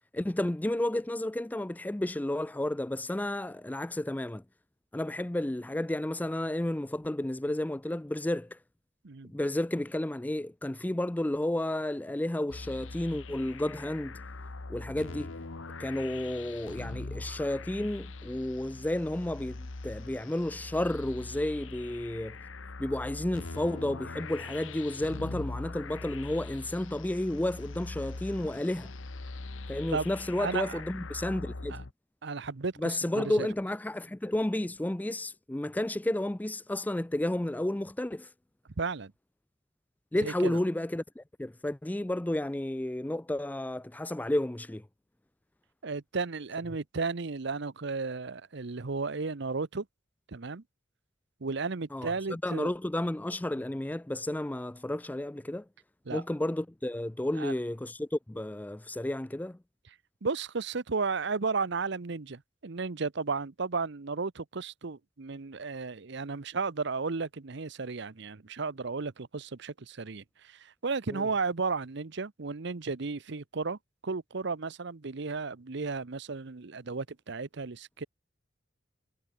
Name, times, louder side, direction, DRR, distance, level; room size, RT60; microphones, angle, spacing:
voice 1, 0.1-4.4 4.9-8.6 9.2-14.2 14.7-15.3 15.8-22.4 22.8-28.9 29.7-31.8 32.8-38.3 40.1-44.8 51.9-55.6 56.1-59.6 71.1-71.3, left 1 dB, 10° left, 0.4 m, -32 dB
sound 1, 12.5-31.9, left 3 dB, 80° left, 1.2 m, -42 dB
voice 2, 30.4-30.8 31.7-31.8 32.2-33.5 38.8-39.1 40.2-40.6 45.8-49.9 50.3-50.6 51.4-52.7 56.1-56.2 57.4-57.5 60.2-73.8 74.0-78.1, right 4 dB, 60° right, 0.8 m, -34 dB
head